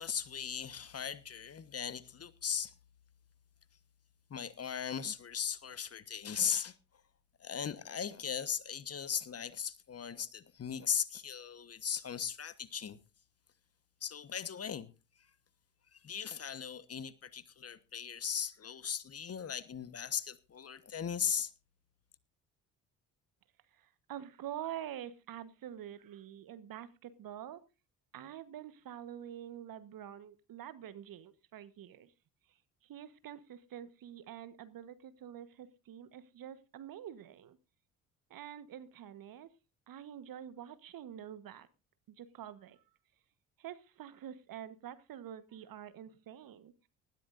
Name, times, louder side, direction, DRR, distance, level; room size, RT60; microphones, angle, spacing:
voice 1, 0.0-2.7 4.3-6.7 7.4-13.0 14.0-14.9 15.9-21.5, left 7 dB, 35° left, 1.3 m, -38 dB
voice 2, 23.7-27.6 28.1-32.1 32.8-37.6 38.3-39.5 39.9-41.7 42.1-42.8 43.6-46.7, right 10 dB, 50° right, 1.4 m, -47 dB
19.5 x 13.5 x 2.6 m
hypercardioid pair, 55°, 42 cm